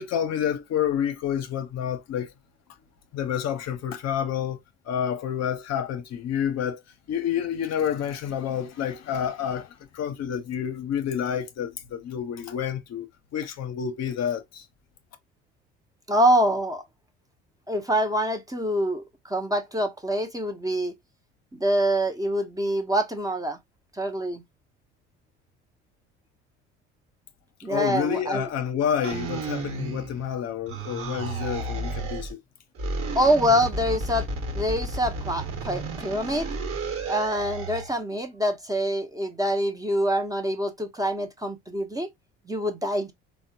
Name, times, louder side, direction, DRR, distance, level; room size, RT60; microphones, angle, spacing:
voice 1, 0.0-2.3 3.1-4.6 4.9-6.8 7.1-14.7 27.7-32.4, left 9 dB, 50° left, 0.6 m, -29 dB
voice 2, 16.1-16.8 17.7-20.9 21.5-23.6 23.9-24.4 27.6-28.5 33.2-34.3 34.5-36.5 37.1-42.1 42.5-43.1, equal, 10° right, 0.6 m, -25 dB
sound 1, 29.0-30.3 30.7-32.3 32.8-37.9, right 2 dB, 45° right, 1.1 m, -32 dB
3.5 x 2.1 x 2.6 m
hypercardioid pair, 70°, 33 cm